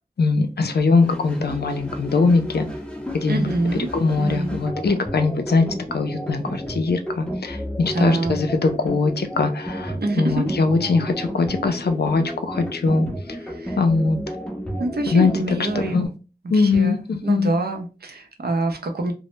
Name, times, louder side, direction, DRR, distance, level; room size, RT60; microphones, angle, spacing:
voice 1, 0.2-2.7 3.1-3.4 3.9-13.1 13.8-14.2 15.1-15.3 15.7-16.1 16.5-17.5, left 4 dB, 80° left, 0.4 m, -21 dB
sound 1, 1.0-16.1, equal, 5° left, 0.5 m, -32 dB
voice 2, 3.3-3.9 4.2-4.6 7.9-8.4 10.0-10.6 13.4-13.8 14.8-16.1 16.5-19.1, right 2 dB, 75° right, 0.5 m, -25 dB
2.0 x 2.0 x 3.0 m
wide cardioid pair, 55°, 17 cm